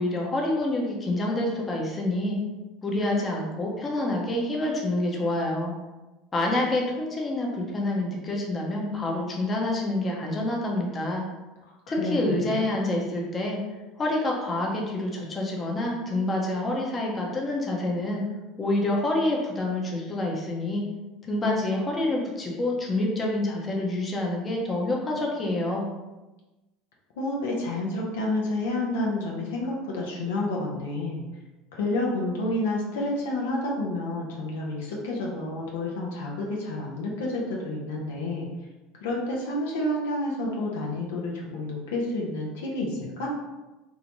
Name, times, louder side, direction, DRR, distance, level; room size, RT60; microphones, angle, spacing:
voice 1, 0.0-2.4 2.8-5.7 6.3-11.3 11.9-13.6 14.0-18.2 18.6-20.8 21.3-25.9, left 1 dB, 25° left, -1 dB, 0.7 m, -27 dB
voice 2, 11.6-12.6 27.2-31.2 31.7-38.5 39.0-43.3, left 1 dB, 85° left, -2 dB, 0.6 m, -29 dB
2.7 x 2.1 x 2.9 m, 1.1 s
supercardioid pair, 95°, 0 cm